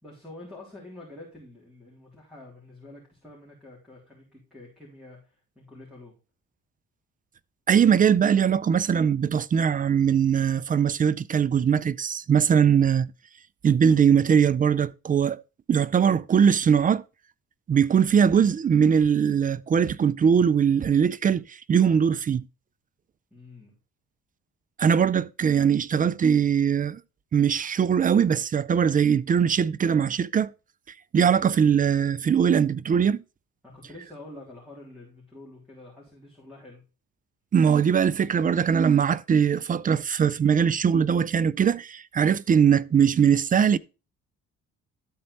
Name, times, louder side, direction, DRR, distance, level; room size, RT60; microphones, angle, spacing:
voice 1, 0.0-6.2 23.3-23.8 33.6-36.9, left 2 dB, ahead, 3.4 m, -47 dB
voice 2, 7.7-13.1 13.6-15.4 15.7-17.0 17.7-22.4 24.8-27.0 27.3-30.5 31.1-33.2 37.5-43.8, right 7 dB, 30° right, 0.3 m, -21 dB
12.5 x 4.4 x 4.1 m
cardioid pair, 90°, 30 cm